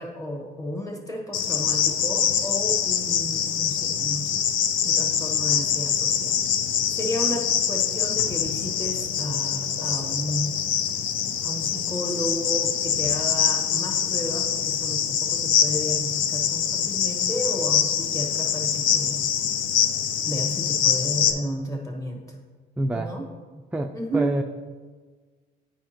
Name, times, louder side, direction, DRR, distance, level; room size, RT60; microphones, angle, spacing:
voice 1, 0.0-4.4 4.8-6.4 6.9-10.5 11.4-19.3 20.2-22.2 22.9-23.2 23.9-24.3, equal, 15° left, 1 dB, 1.5 m, -32 dB
Cricket, 1.3-21.3, left 8 dB, 85° left, 0.6 m, -24 dB
voice 2, 22.8-23.1 23.7-24.4, right 1 dB, 5° right, 4 dB, 0.4 m, -26 dB
9.3 x 5.0 x 3.0 m, 1.4 s
cardioid pair, 90°, 20 cm